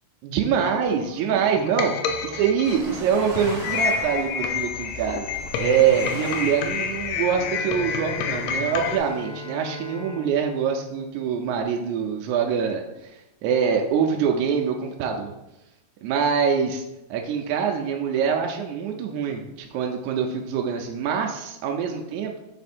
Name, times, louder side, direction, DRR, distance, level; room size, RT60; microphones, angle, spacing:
voice 1, 0.2-5.3 5.6-15.3 16.0-16.8 17.1-22.4, right 7 dB, 85° right, 2 dB, 2.0 m, -24 dB
sound 1, 0.6-9.0, left 6 dB, 80° left, 1.7 m, -29 dB
sound 2, 2.6-9.3, right 1 dB, 35° right, 2.6 m, -40 dB
Bowed string instrument, 7.2-12.1, left 1 dB, 30° left, 2.0 m, -40 dB
6.5 x 3.5 x 4.2 m, 0.91 s
omnidirectional pair, 3.4 m